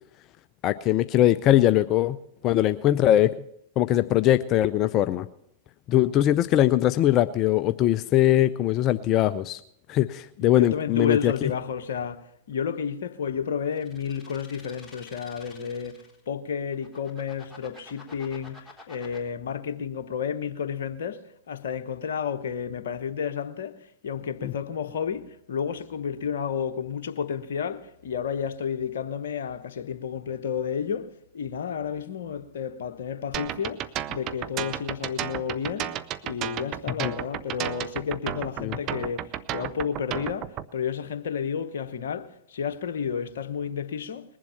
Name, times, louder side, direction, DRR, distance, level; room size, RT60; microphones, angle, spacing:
voice 1, 0.6-2.2 2.4-3.3 3.8-5.3 5.9-9.6 9.9-11.3 24.4-24.5 37.0-37.1 38.6-38.8, left 13 dB, 40° left, 0.5 m, -21 dB
voice 2, 10.4-31.1 31.3-35.9 36.2-44.2, left 7 dB, 70° left, 1.0 m, -31 dB
sound 1, 13.7-16.2 16.7-19.2, left 3 dB, 5° left, 3.9 m, -49 dB
sound 2, 33.3-40.7, right 12 dB, 40° right, 0.7 m, -32 dB
21.0 x 7.5 x 5.7 m
hypercardioid pair, 100°, 0 cm